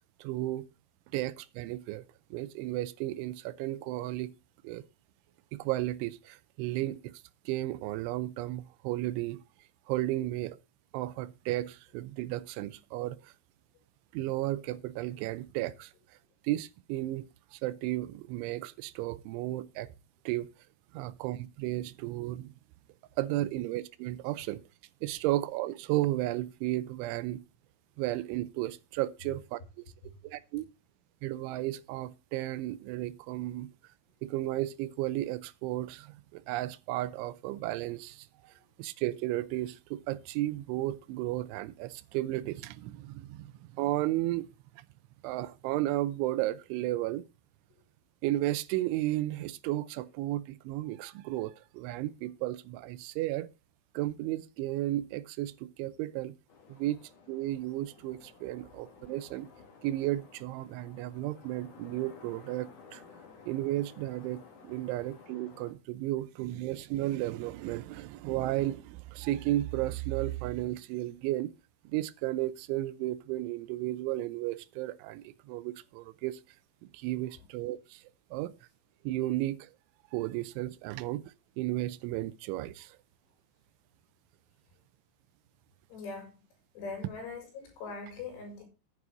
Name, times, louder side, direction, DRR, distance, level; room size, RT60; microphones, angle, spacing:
voice 1, 0.2-0.7 1.1-2.0 2.3-4.3 4.6-4.8 5.5-7.1 7.5-9.4 9.9-10.6 10.9-13.3 14.1-15.9 16.4-17.3 17.5-19.9 20.3-20.5 20.9-22.5 23.2-24.6 25.0-27.4 28.0-29.6 30.2-30.7 31.2-33.7 34.2-38.5 38.8-44.5 45.2-47.2 48.2-53.5 53.9-56.3 56.7-57.0 57.3-59.5 59.8-63.0 63.5-71.5 71.9-76.4 76.9-78.0 78.3-78.5 79.0-79.7 80.1-81.2 81.6-83.0, right 16 dB, 85° right, 3.1 m, -33 dB
sound 1, 56.5-65.7, left 5 dB, 55° left, 2.5 m, -55 dB
voice 2, 85.9-86.5 86.7-88.6, left 4 dB, 90° left, 7.3 m, -42 dB
11.0 x 9.7 x 3.9 m
omnidirectional pair, 5.4 m